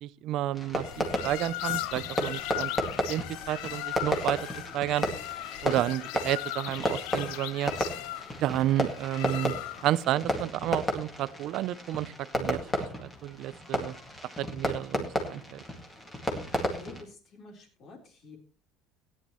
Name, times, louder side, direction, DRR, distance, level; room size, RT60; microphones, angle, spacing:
voice 1, 0.0-2.7 3.1-4.5 4.7-5.0 5.6-7.7 8.4-9.5 9.8-14.0 14.4-15.6, right 13 dB, 45° right, 17 dB, 0.5 m, -31 dB
Fireworks, 0.5-17.0, left 1 dB, 10° left, 2.0 m, -33 dB
sound 1, 0.8-10.0, left 16 dB, 75° left, 0.6 m, -37 dB
voice 2, 16.7-18.4, left 2 dB, 35° left, 2 dB, 3.7 m, -48 dB
17.5 x 10.0 x 3.0 m, 0.34 s
cardioid pair, 175°, 0 cm